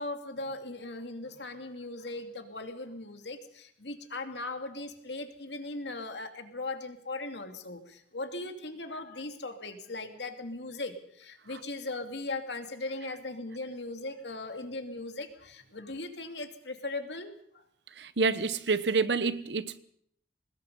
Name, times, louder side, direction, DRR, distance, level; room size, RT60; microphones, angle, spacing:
voice 1, 0.0-17.6, left 2 dB, 70° left, 2.5 m, -39 dB
voice 2, 18.0-19.8, right 4 dB, 70° right, 1.1 m, -28 dB
24.0 x 20.0 x 5.4 m
head